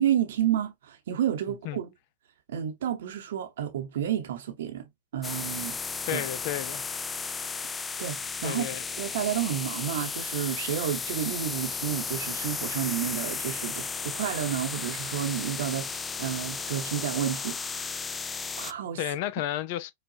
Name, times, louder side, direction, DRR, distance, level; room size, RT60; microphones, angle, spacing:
voice 1, 0.0-1.9 2.5-5.8 6.1-6.2 8.0-8.7 9.0-17.9 18.6-19.0, right 10 dB, 70° right, 0.8 m, -30 dB
voice 2, 1.5-1.8 6.1-6.9 8.4-8.8 19.0-19.9, left 13 dB, 55° left, 0.6 m, -32 dB
sound 1, 5.2-18.7, left 5 dB, 15° left, 0.3 m, -34 dB
4.9 x 2.3 x 2.7 m
hypercardioid pair, 110°, 0 cm